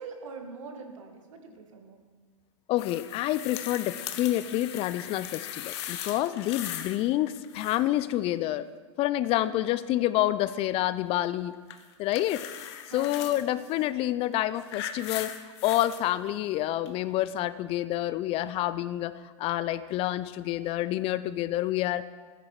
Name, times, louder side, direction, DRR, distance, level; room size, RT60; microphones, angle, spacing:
voice 1, 0.0-2.0 12.9-13.4, right 4 dB, 75° right, 4 dB, 1.9 m, -43 dB
voice 2, 2.7-8.6 9.0-11.5 12.0-15.3 15.6-22.0, left 14 dB, 35° left, 16 dB, 0.5 m, -28 dB
sound 1, 2.8-7.0 7.3-8.0 11.7-13.4 14.2-16.0 16.9-17.0, left 11 dB, 55° left, 1.1 m, -39 dB
15.0 x 9.9 x 4.7 m, 1.5 s
hypercardioid pair, 110°, 16 cm